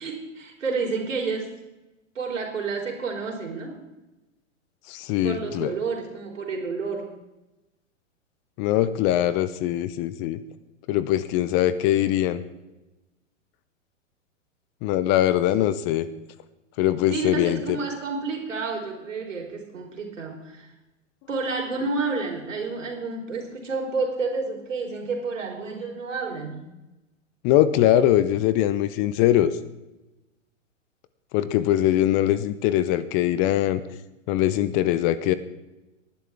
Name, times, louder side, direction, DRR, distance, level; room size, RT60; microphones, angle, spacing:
voice 1, 0.0-1.5 2.2-3.8 5.2-7.1 15.6-15.7 17.1-20.7 21.3-26.7, right 4 dB, 75° right, 1 dB, 4.0 m, -30 dB
voice 2, 4.9-5.7 8.6-10.4 10.9-12.4 14.8-16.1 16.8-17.8 27.4-29.5 31.3-33.8 34.3-35.3, left 12 dB, 30° left, 15 dB, 0.7 m, -22 dB
19.5 x 11.0 x 3.6 m, 1.0 s
figure-of-eight pair, 110°, 38 cm